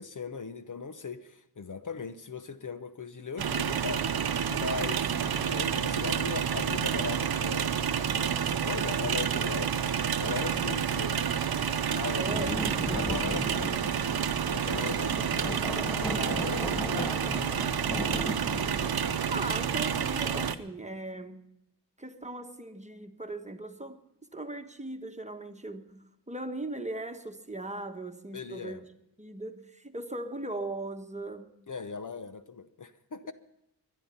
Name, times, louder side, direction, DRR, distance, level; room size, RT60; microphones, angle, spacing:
voice 1, 0.0-9.7 10.2-11.5 11.9-12.3 12.9-13.9 14.5-15.2 15.4-18.4 19.0-19.3 28.3-28.8 31.7-33.3, left 5 dB, 45° left, 1.0 m, -39 dB
sound 1, 3.4-20.5, right 8 dB, 60° right, 0.9 m, -29 dB
voice 2, 12.1-12.5 19.0-21.5 22.0-24.0 24.3-25.9 26.3-28.8 29.2-31.5, right 2 dB, 15° right, 1.3 m, -38 dB
sound 2, 12.3-18.9, equal, 5° left, 0.8 m, -36 dB
22.0 x 11.0 x 5.6 m
cardioid pair, 50°, 41 cm